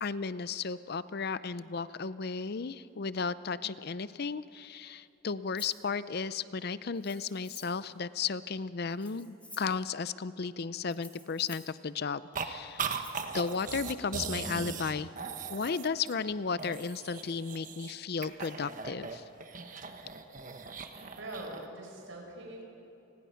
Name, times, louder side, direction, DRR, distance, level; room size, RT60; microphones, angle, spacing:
voice 1, 0.0-12.9 13.3-15.1 15.5-19.2, left 5 dB, 50° left, 15 dB, 0.5 m, -34 dB
Rattle (instrument), 5.6-5.8 6.9-7.8 8.9-9.8 10.9-11.7 12.9-13.6, left 2 dB, 5° left, 2.5 m, -52 dB
sound 1, 12.3-12.5 12.8-16.3 16.6-17.9 18.2-21.7, right 5 dB, 40° right, 1.3 m, -39 dB
voice 2, 21.0-22.6, right 1 dB, 75° right, 0 dB, 4.6 m, -43 dB
30.0 x 20.5 x 5.8 m, 3.0 s
head